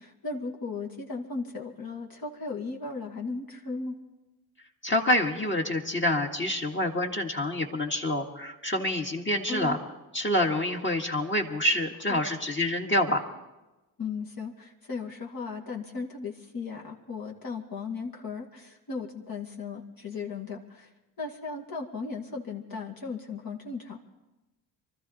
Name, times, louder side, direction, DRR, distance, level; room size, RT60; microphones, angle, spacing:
voice 1, 0.0-4.0 9.5-9.8 12.1-12.2 14.0-20.9 21.2-24.0, left 4 dB, 50° left, 0 dB, 2.3 m, -36 dB
voice 2, 4.8-9.8 10.1-13.3, left 1 dB, 25° left, 2 dB, 1.9 m, -27 dB
24.0 x 13.5 x 4.2 m, 1.0 s
hypercardioid pair, 50°, 46 cm